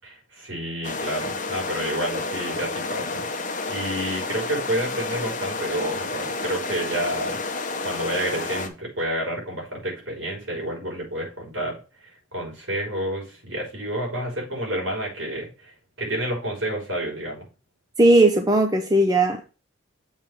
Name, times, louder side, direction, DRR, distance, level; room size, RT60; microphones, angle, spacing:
voice 1, 0.0-3.2 3.7-7.4 7.8-11.8 12.0-17.5, right 1 dB, 65° right, 4.1 m, -29 dB
sound 1, 0.8-8.7, left 3 dB, 40° left, 0.8 m, -30 dB
voice 2, 18.0-19.5, right 1 dB, 20° right, 0.6 m, -18 dB
7.3 x 3.4 x 6.0 m
head